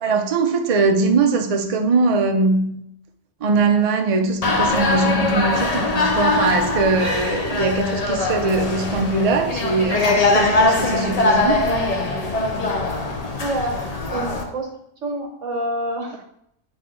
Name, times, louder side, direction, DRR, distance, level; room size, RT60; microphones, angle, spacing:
voice 1, 0.0-2.8 3.4-11.6, right 3 dB, 55° right, 0.4 m, -21 dB
sound 1, 4.4-14.4, left 2 dB, 40° left, 0.6 m, -21 dB
voice 2, 13.4-14.7 15.0-16.3, right 1 dB, 70° right, 1.5 m, -27 dB
8.1 x 3.4 x 3.7 m
omnidirectional pair, 1.4 m